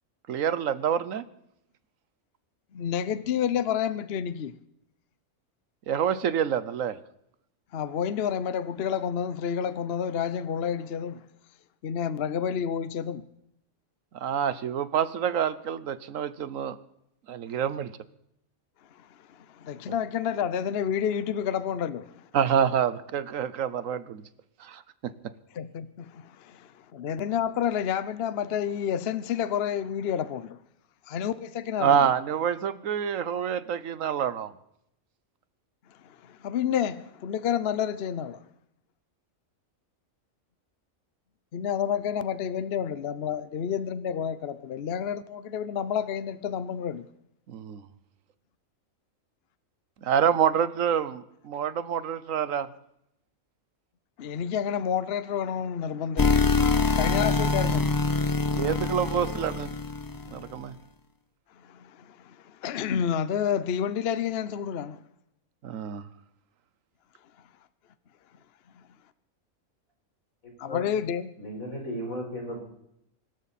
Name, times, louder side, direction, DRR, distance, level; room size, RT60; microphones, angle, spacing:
voice 1, 0.3-1.2 5.9-7.0 14.1-16.8 17.3-17.9 19.9-20.0 22.3-24.2 24.6-24.8 31.8-34.5 47.5-47.9 50.0-52.7 56.6-56.7 58.5-59.7 60.3-60.8 65.6-66.0, right 8 dB, 75° right, 1.2 m, -27 dB
voice 2, 2.7-4.5 7.7-11.2 11.8-13.3 19.0-22.3 25.5-30.6 31.1-32.1 35.9-38.4 41.5-47.1 54.2-56.4 56.9-57.9 61.6-65.0 70.6-71.3, left 8 dB, 55° left, 0.9 m, -30 dB
sound 1, 56.2-60.4, left 3 dB, 30° left, 0.3 m, -25 dB
voice 3, 71.4-72.6, equal, 90° left, 5.0 m, -35 dB
24.5 x 13.0 x 4.2 m
omnidirectional pair, 1.4 m